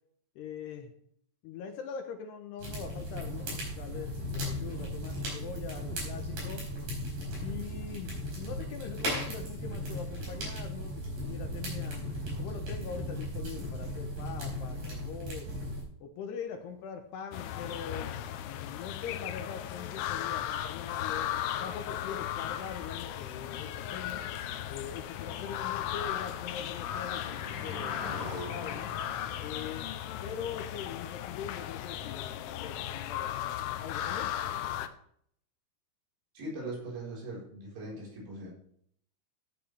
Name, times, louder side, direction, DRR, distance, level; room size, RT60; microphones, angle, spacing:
voice 1, 0.4-0.9 1.4-6.7 7.4-12.0 12.4-15.5 16.0-21.3 21.6-24.2 24.7-28.9 29.4-29.9 30.2-33.4 33.8-34.3, left 7 dB, 70° left, 5 dB, 2.8 m, -42 dB
sound 1, 2.6-15.8, equal, 50° right, 6.1 m, -36 dB
sound 2, 17.3-34.9, left 11 dB, 90° left, 3.4 m, -36 dB
sound 3, 24.1-29.6, left 2 dB, 25° left, 1.9 m, -45 dB
voice 2, 36.4-38.5, right 1 dB, 80° right, -4 dB, 7.2 m, -40 dB
15.0 x 9.4 x 3.5 m, 0.66 s
omnidirectional pair, 5.5 m